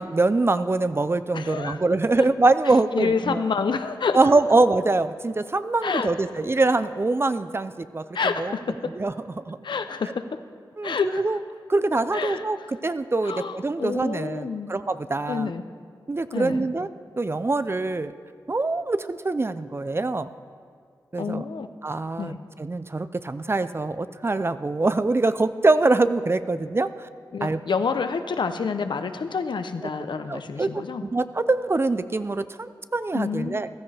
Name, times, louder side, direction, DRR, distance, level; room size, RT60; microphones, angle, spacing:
voice 1, 0.0-3.4 4.1-8.1 8.4-8.5 9.0-9.6 10.8-11.4 11.7-15.5 16.1-16.9 17.2-18.1 18.5-20.3 21.1-21.4 21.8-27.1 27.4-27.6 30.3-33.7, right 3 dB, 30° right, 13 dB, 0.5 m, -24 dB
voice 2, 1.3-1.8 2.9-4.2 5.8-6.1 8.1-8.9 9.6-10.2 10.8-11.2 12.1-12.4 13.2-14.7 15.3-15.6 16.3-16.7 21.2-21.7 22.2-22.4 27.3-31.0 33.1-33.6, left 5 dB, 75° left, 9 dB, 0.7 m, -28 dB
15.0 x 13.0 x 3.4 m, 2.2 s
cardioid pair, 60°, 8 cm